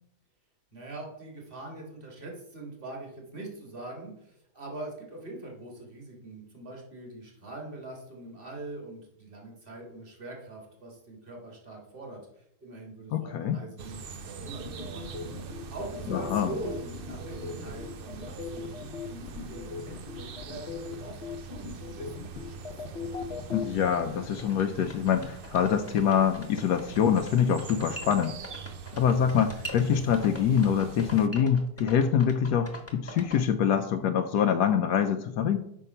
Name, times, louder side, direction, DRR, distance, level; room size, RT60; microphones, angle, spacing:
voice 1, 0.7-15.1 15.7-22.7, right 2 dB, 35° right, 0 dB, 2.2 m, -43 dB
voice 2, 13.1-13.6 16.1-16.5 23.5-28.4 28.9-35.6, left 8 dB, 85° left, 5 dB, 1.2 m, -25 dB
sound 1, 13.8-31.3, right 5 dB, 70° right, 0.5 m, -43 dB
sound 2, 14.6-23.6, left 6 dB, 50° left, 0.9 m, -39 dB
sound 3, 24.1-24.2 24.4-33.4, left 1 dB, 10° left, 1.0 m, -42 dB
7.3 x 5.5 x 5.5 m, 0.73 s
omnidirectional pair, 1.7 m